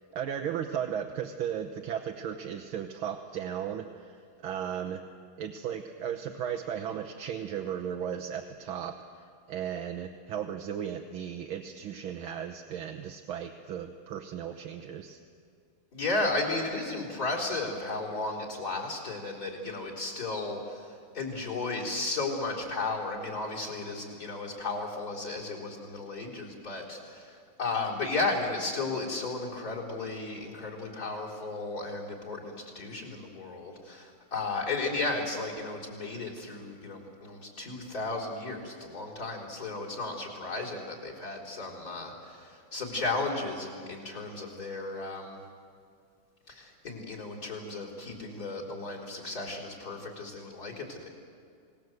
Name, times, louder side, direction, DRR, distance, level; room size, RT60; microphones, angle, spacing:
voice 1, 0.1-5.0 5.4-15.2, right 8 dB, 80° right, 4 dB, 1.8 m, -36 dB
voice 2, 15.9-45.4 46.5-51.1, left 3 dB, 45° left, 0 dB, 4.5 m, -34 dB
27.5 x 19.0 x 7.9 m, 2.3 s
omnidirectional pair, 2.3 m